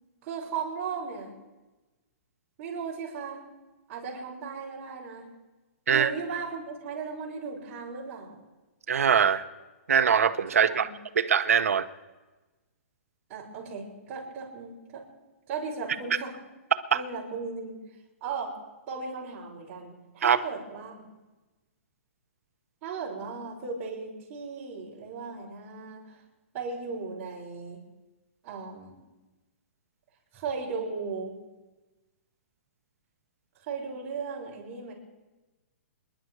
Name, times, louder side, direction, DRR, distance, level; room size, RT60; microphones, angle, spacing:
voice 1, 0.2-1.3 2.6-3.4 3.9-5.3 5.9-8.4 10.7-10.9 13.3-15.0 15.5-16.3 16.9-17.8 18.2-18.5 18.9-21.1 22.8-26.2 26.5-27.8 28.4-28.9 30.3-31.3 33.7-34.9, right 5 dB, 30° right, -4 dB, 5.7 m, -36 dB
voice 2, 8.9-9.4 9.9-10.9 11.1-11.9 16.9-17.0 20.2-20.4, right 7 dB, 90° right, 11 dB, 1.0 m, -22 dB
26.5 x 11.0 x 4.8 m, 1.2 s
hypercardioid pair, 160°, 8 cm